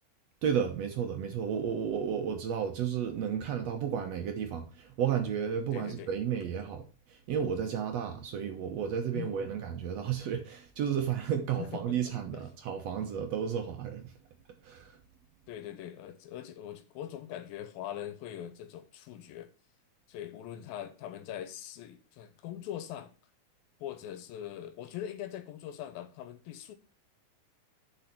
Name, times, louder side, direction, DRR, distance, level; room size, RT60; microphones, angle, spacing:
voice 1, 0.4-14.1 14.6-15.0, right 8 dB, 70° right, 1.6 m, -32 dB
voice 2, 5.7-6.1 9.1-9.5 11.6-12.4 15.5-19.5 20.1-23.1 23.8-26.7, left 11 dB, 85° left, 2.5 m, -42 dB
6.9 x 5.6 x 5.9 m
omnidirectional pair, 4.3 m